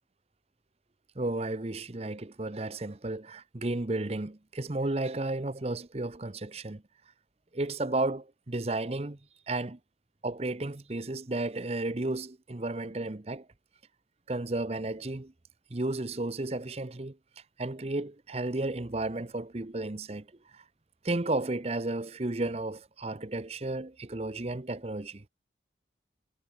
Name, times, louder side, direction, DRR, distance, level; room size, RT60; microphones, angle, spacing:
voice 1, 1.2-6.8 7.5-9.2 9.5-9.8 10.2-13.4 14.3-15.3 15.7-17.2 17.6-20.3 20.5-20.6 21.0-25.2, right 2 dB, 35° right, 0.8 m, -33 dB
head